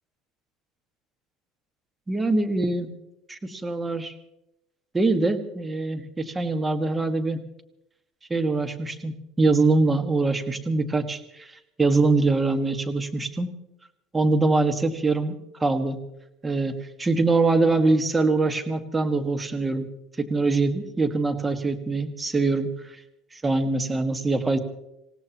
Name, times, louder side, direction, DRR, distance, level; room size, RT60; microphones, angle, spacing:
voice 1, 2.1-2.9 3.3-4.1 4.9-7.4 8.3-11.5 11.8-13.5 14.1-16.0 16.4-19.9 20.2-23.0 23.4-24.6, right 3 dB, 15° right, 8 dB, 1.7 m, -23 dB
27.5 x 17.0 x 3.0 m, 0.83 s
supercardioid pair, 105°, 0 cm